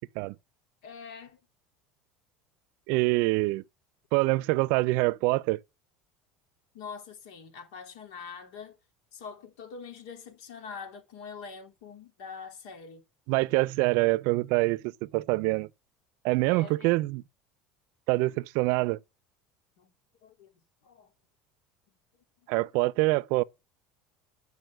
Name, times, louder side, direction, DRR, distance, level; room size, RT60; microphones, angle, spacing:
voice 1, 0.8-1.4 6.7-8.8 9.1-13.0 16.4-16.9 19.8-19.9 20.2-21.1, left 5 dB, 80° left, 3.4 m, -44 dB
voice 2, 2.9-3.6 4.1-5.6 13.3-15.7 16.2-17.2 18.1-19.0 22.5-23.4, right 22 dB, 70° right, 0.5 m, -25 dB
11.0 x 5.3 x 7.8 m
supercardioid pair, 95°, 4 cm